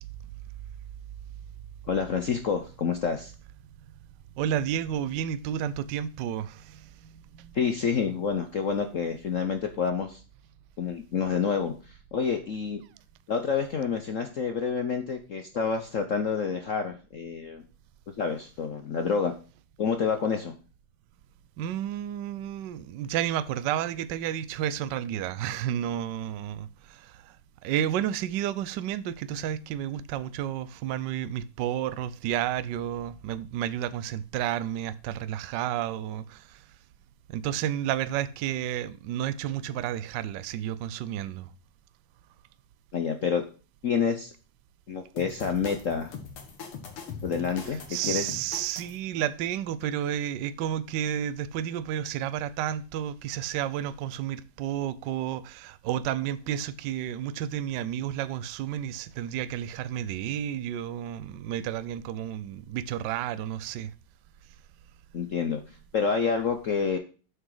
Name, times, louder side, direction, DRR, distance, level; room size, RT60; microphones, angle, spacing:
voice 1, 1.9-3.3 7.5-10.2 10.8-12.8 13.3-17.6 18.2-19.3 19.8-20.5 42.9-43.4 43.8-44.3 44.9-46.1 47.2-48.3 65.1-65.6 65.9-67.0, left 6 dB, 60° left, 0.8 m, -28 dB
voice 2, 4.4-7.5 21.6-27.4 27.6-36.6 37.3-41.5 47.9-63.9, right 11 dB, 70° right, 1.1 m, -31 dB
sound 1, 45.2-49.0, left 5 dB, 85° left, 2.5 m, -41 dB
8.0 x 6.1 x 4.8 m
omnidirectional pair, 2.4 m